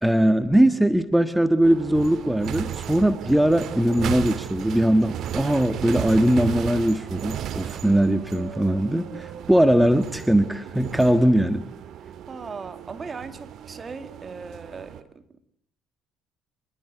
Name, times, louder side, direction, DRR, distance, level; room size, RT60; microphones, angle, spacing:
voice 1, 0.0-11.6, right 1 dB, 5° right, 10 dB, 1.6 m, -20 dB
sound 1, 1.6-15.0, right 10 dB, 55° right, 2.2 m, -35 dB
voice 2, 12.3-15.2, right 4 dB, 30° right, 9 dB, 2.4 m, -38 dB
26.0 x 21.5 x 8.2 m, 0.65 s
hypercardioid pair, 55°, 0 cm